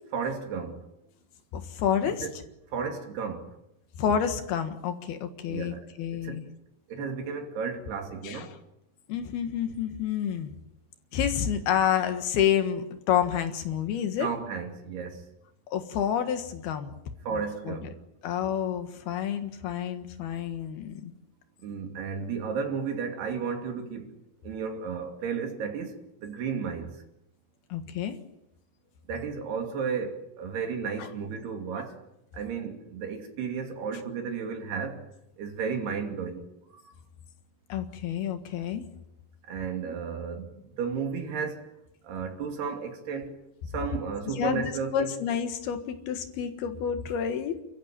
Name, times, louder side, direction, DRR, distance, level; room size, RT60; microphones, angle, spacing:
voice 1, 0.1-0.8 2.2-2.3 2.7-3.4 5.5-5.8 6.2-6.4 6.9-8.5 14.2-15.2 17.3-17.9 21.6-24.1 24.4-26.0 26.2-26.9 29.1-31.9 32.3-35.0 35.4-36.4 39.5-40.5 40.8-41.6 42.1-43.3 43.7-45.1, right 6 dB, 75° right, 4.7 m, -33 dB
voice 2, 1.5-2.3 4.0-6.4 8.2-8.6 9.1-10.5 11.1-14.3 15.7-16.9 17.3-17.9 18.2-21.1 27.7-28.2 31.0-31.1 37.7-38.8 44.3-44.6 44.9-47.6, left 9 dB, 75° left, 3.5 m, -29 dB
29.5 x 14.0 x 8.9 m
omnidirectional pair, 4.7 m